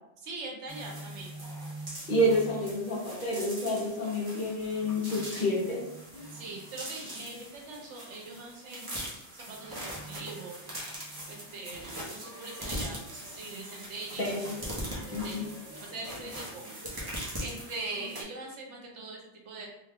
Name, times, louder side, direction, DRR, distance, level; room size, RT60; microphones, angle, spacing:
voice 1, 0.2-1.3 6.3-8.9 9.4-10.6 11.3-14.3 14.8-15.5 15.9-16.7 17.4-19.7, right 3 dB, 80° right, -1 dB, 1.1 m, -42 dB
sound 1, 0.7-18.2, right 1 dB, 25° right, 0.6 m, -41 dB
voice 2, 2.1-5.8 14.2-14.5 15.1-15.4, equal, 50° left, -5 dB, 1.0 m, -29 dB
2.8 x 2.2 x 3.4 m, 0.85 s
omnidirectional pair, 1.2 m